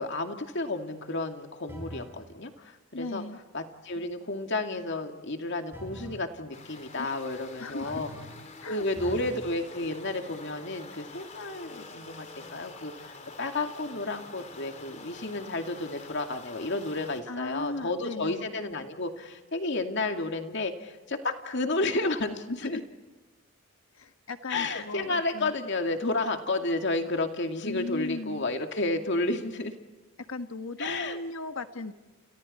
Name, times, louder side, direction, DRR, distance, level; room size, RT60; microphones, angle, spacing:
voice 1, 0.0-3.2 3.5-8.1 8.7-12.9 13.4-22.8 24.5-29.7 30.8-31.2, left 2 dB, 60° left, 5 dB, 2.4 m, -31 dB
sound 1, 1.7-2.2 5.7-6.3 7.8-8.5 9.0-9.5, equal, 10° right, 6.0 m, -42 dB
voice 2, 2.9-3.4 7.0-7.2 7.6-8.0 8.6-9.1 17.3-18.5 22.6-22.8 24.0-25.5 27.6-28.5 30.3-31.9, left 2 dB, 80° left, 8 dB, 1.5 m, -37 dB
sound 2, 6.5-17.2, left 3 dB, 35° left, 2.9 m, -47 dB
29.5 x 29.5 x 4.3 m, 1.3 s
head